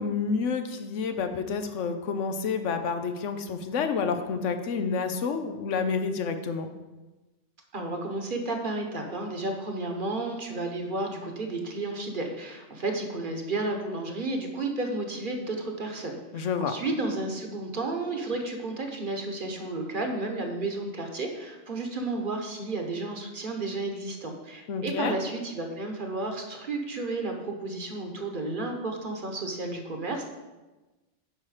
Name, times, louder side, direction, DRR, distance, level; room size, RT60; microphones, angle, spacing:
voice 1, 0.0-6.7 16.3-16.7 24.7-25.2, left 5 dB, 90° left, 8 dB, 1.1 m, -29 dB
voice 2, 7.7-30.3, right 2 dB, 45° right, 3 dB, 1.2 m, -32 dB
9.0 x 5.7 x 4.9 m, 1.1 s
omnidirectional pair, 1.2 m